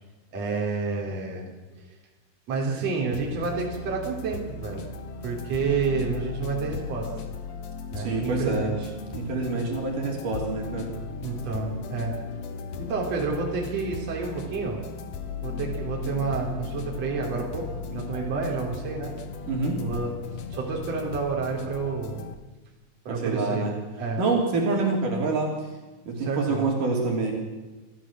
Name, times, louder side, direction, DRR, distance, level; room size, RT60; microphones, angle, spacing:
voice 1, 0.3-1.5 1.8-1.9 2.5-4.8 5.2-7.1 7.9-8.9 11.2-12.1 12.8-14.8 15.4-19.1 19.8-20.2 20.5-22.2 23.1-23.7 24.0-24.2 26.2-26.7, right 4 dB, 45° right, -1 dB, 4.4 m, -29 dB
sound 1, 3.1-22.3, left 5 dB, 60° left, 1.9 m, -37 dB
voice 2, 8.0-8.7 9.1-10.9 19.5-19.8 23.1-23.8 24.2-25.5 26.1-27.3, right 3 dB, 60° right, 0 dB, 4.8 m, -26 dB
29.0 x 14.0 x 7.5 m, 1.2 s
omnidirectional pair, 4.3 m